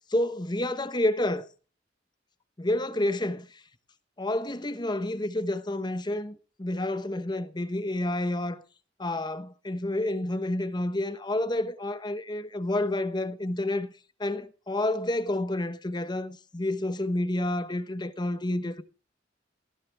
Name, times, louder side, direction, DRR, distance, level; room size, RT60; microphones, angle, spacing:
voice 1, 0.1-1.5 2.6-3.6 4.2-8.6 9.0-13.9 14.2-18.8, left 1 dB, 25° left, 1.0 m, -29 dB
19.0 x 14.5 x 3.4 m
head